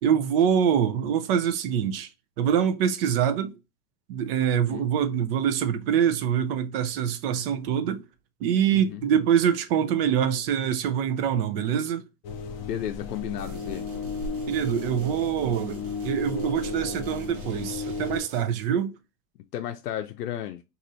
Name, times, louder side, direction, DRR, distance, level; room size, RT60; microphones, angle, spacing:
voice 1, 0.0-2.1 2.4-3.5 4.1-8.0 8.4-12.0 14.5-19.0, right 8 dB, 40° right, 0.5 m, -25 dB
voice 2, 4.5-4.9 8.7-9.0 12.6-13.9 19.5-20.6, left 11 dB, 85° left, 0.6 m, -33 dB
sound 1, 12.2-18.2, left 4 dB, 35° left, 0.4 m, -34 dB
sound 2, 13.4-18.4, right 3 dB, 60° right, 1.1 m, -50 dB
2.7 x 2.6 x 4.2 m
hypercardioid pair, 130°, 46 cm